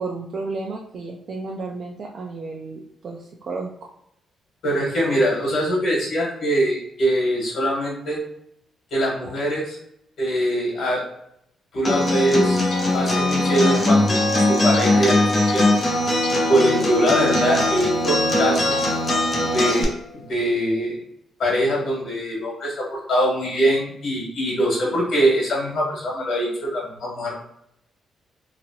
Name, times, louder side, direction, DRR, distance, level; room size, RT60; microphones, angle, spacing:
voice 1, 0.0-3.7, right 3 dB, 50° right, -2 dB, 0.5 m, -32 dB
voice 2, 4.6-8.2 8.9-9.8 10.2-11.0 11.7-15.7 16.5-18.7 19.4-20.9 21.4-27.3, equal, 60° left, -2 dB, 1.4 m, -23 dB
Acoustic guitar, 11.8-19.8, left 1 dB, 30° left, 0.7 m, -20 dB
sound 1, 12.2-20.5, left 4 dB, 80° left, 0.7 m, -34 dB
2.9 x 2.5 x 2.7 m, 0.75 s
cardioid pair, 125°, 0 cm